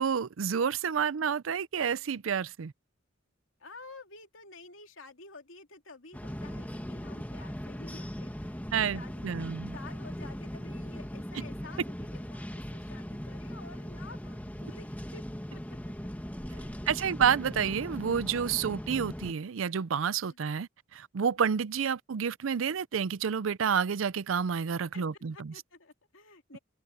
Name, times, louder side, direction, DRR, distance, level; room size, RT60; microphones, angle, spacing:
voice 1, 0.0-2.7 8.7-9.8 11.4-11.5 16.9-25.5, right 7 dB, 85° right, 0.5 m, -29 dB
voice 2, 3.6-15.6 16.0-16.1 16.5-16.9 20.2-20.4 24.9-25.0 25.3-26.6, left 3 dB, 80° left, 2.8 m, -51 dB
sound 1, 6.1-19.3, equal, 10° left, 1.8 m, -39 dB
open air
head